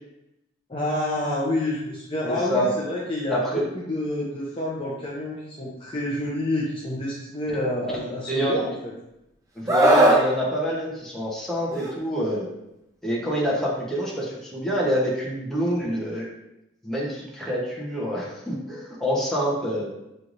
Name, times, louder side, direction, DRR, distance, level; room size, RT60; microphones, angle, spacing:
voice 1, 0.7-3.4 3.9-8.7, left 1 dB, 25° left, -5 dB, 0.6 m, -28 dB
voice 2, 2.3-2.7 3.3-3.6 8.3-8.6 9.5-12.5 13.0-16.3 16.8-19.9, equal, ahead, -6 dB, 0.9 m, -26 dB
Screaming, 9.7-10.2 11.7-11.9, right 1 dB, 15° right, 0.4 m, -18 dB
5.6 x 3.2 x 2.6 m, 0.88 s
head